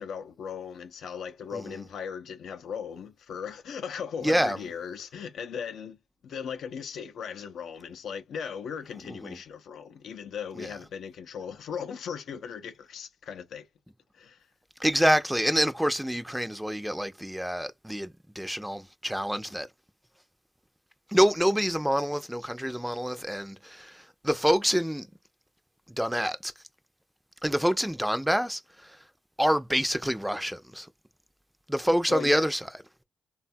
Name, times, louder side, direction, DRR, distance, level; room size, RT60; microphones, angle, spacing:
voice 1, 0.0-6.0 6.2-13.7 14.1-14.5 32.1-32.5, left 7 dB, 80° left, 0.4 m, -38 dB
voice 2, 4.2-4.6 9.1-9.4 10.6-10.7 14.8-19.7 21.1-25.1 25.9-26.5 27.4-29.0 29.4-30.9 31.7-32.7, equal, 5° right, 0.4 m, -27 dB
3.4 x 2.3 x 2.5 m
supercardioid pair, 55°, 0 cm